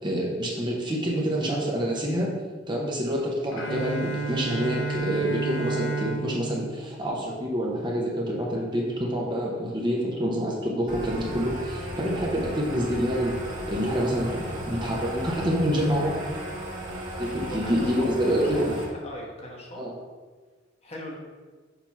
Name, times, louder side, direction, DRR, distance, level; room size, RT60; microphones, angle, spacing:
voice 1, 0.0-13.4 13.7-16.2 17.2-18.6 19.8-19.9, equal, 25° right, -2 dB, 0.9 m, -27 dB
Bowed string instrument, 3.5-7.6, right 3 dB, 65° left, 0.7 m, -31 dB
sound 1, 10.9-18.9, right 1 dB, 40° right, 1.7 m, -35 dB
voice 2, 17.2-18.7 19.0-19.9 20.8-21.2, equal, 30° left, -3 dB, 1.2 m, -40 dB
6.9 x 2.9 x 5.7 m, 1.4 s
head